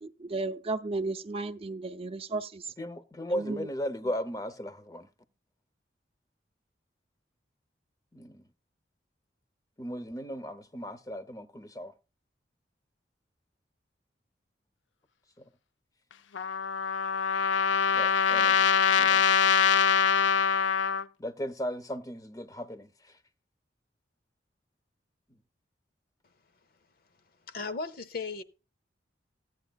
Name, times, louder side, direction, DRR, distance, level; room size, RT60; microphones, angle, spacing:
voice 1, 0.0-2.6 3.3-3.7, right 3 dB, 30° right, 0.5 m, -34 dB
voice 2, 2.8-5.1 8.1-8.5 9.8-11.9 17.9-18.7 19.0-19.2 21.2-23.2, equal, 20° left, 0.7 m, -36 dB
Trumpet, 16.3-21.0, left 6 dB, 85° left, 0.5 m, -24 dB
voice 3, 27.5-28.4, left 4 dB, 55° left, 0.8 m, -36 dB
15.0 x 9.1 x 2.3 m
head